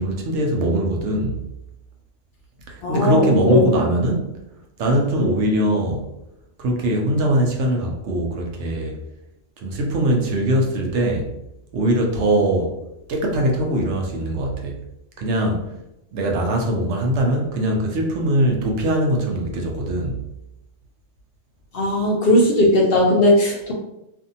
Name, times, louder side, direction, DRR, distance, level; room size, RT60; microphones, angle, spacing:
voice 1, 0.0-1.4 2.7-4.3 4.8-6.1 6.6-9.0 9.6-11.3 11.7-12.8 13.1-14.8 15.2-15.7 16.1-20.2, right 1 dB, 70° right, 1 dB, 0.9 m, -21 dB
voice 2, 2.8-3.6 21.7-23.7, left 1 dB, 60° left, -1 dB, 0.6 m, -17 dB
2.6 x 2.5 x 2.6 m, 0.87 s
omnidirectional pair, 1.3 m